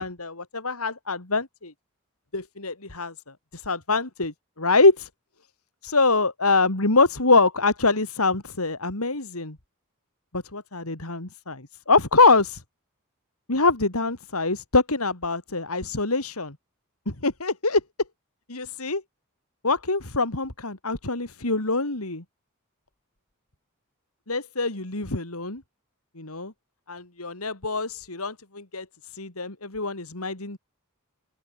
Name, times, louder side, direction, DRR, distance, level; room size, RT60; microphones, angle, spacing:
voice 1, 0.0-1.7 2.3-3.1 3.5-5.1 5.8-9.6 10.3-12.6 13.5-16.6 17.1-17.8 18.5-19.0 19.6-22.2 24.3-25.6 26.2-26.5 26.9-28.9 29.1-30.6, left 3 dB, 80° left, 3.5 m, -24 dB
open air
head